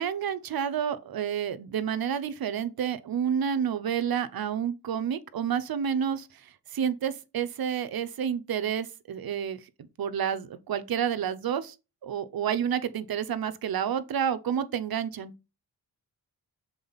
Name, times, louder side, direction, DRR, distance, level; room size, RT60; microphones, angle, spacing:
voice 1, 0.0-9.6 10.0-11.7 12.0-15.3, right 8 dB, 70° right, 0.8 m, -29 dB
7.1 x 3.9 x 4.0 m
wide cardioid pair, 100°, 38 cm